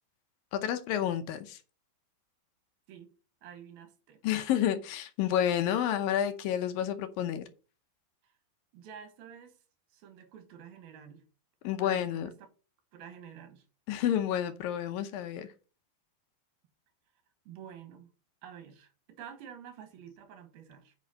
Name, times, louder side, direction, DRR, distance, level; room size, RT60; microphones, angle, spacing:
voice 1, 0.5-1.6 4.2-7.5 11.6-12.3 13.9-15.5, left 10 dB, 75° left, 2.4 m, -30 dB
voice 2, 3.4-4.2 8.2-8.3 8.7-9.6 9.9-11.2 11.8-12.3 12.9-13.6 17.5-18.1 18.4-20.9, right 8 dB, 80° right, 3.1 m, -49 dB
9.1 x 5.3 x 5.3 m
omnidirectional pair, 4.4 m